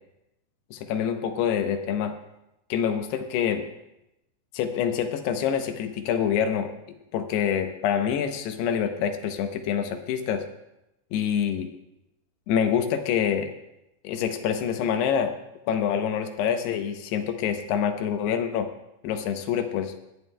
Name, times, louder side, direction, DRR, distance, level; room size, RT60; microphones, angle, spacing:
voice 1, 0.7-2.1 2.7-3.7 4.5-6.7 7.1-10.4 11.1-11.7 12.5-13.5 14.0-15.3 15.7-18.7 19.0-19.9, left 8 dB, 80° left, 7 dB, 2.8 m, -26 dB
25.0 x 9.8 x 2.2 m, 0.90 s
omnidirectional pair, 4.9 m